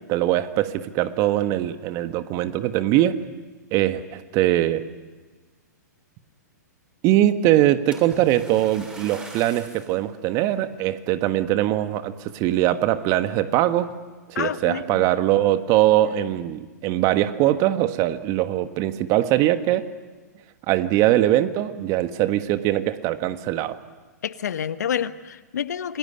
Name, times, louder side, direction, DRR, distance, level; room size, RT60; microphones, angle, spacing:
voice 1, 0.1-3.2 3.7-4.8 7.0-13.9 14.3-19.8 20.7-23.8, right 13 dB, 35° right, 11 dB, 1.5 m, -21 dB
Splash splatter, 7.9-10.0 10.6-10.8 11.4-11.5, right 2 dB, 10° right, 7.1 m, -41 dB
voice 2, 14.3-15.1 24.2-26.0, left 8 dB, 70° left, 13 dB, 1.2 m, -28 dB
28.0 x 20.5 x 9.9 m, 1.3 s
hypercardioid pair, 115°, 10 cm